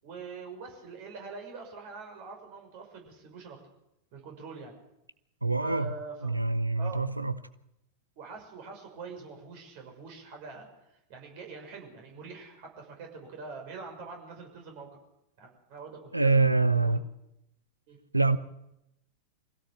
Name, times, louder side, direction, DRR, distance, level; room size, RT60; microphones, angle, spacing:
voice 1, 0.0-3.6 4.1-4.7 5.6-6.4 6.8-7.0 8.2-15.0 15.4-17.0 17.9-18.0, right 4 dB, 45° right, 6.1 m, -44 dB
voice 2, 5.4-5.9 6.2-7.3 16.1-17.0 18.1-18.4, right 3 dB, 85° right, 0.7 m, -25 dB
23.5 x 17.0 x 7.7 m
figure-of-eight pair, 90°, 0 cm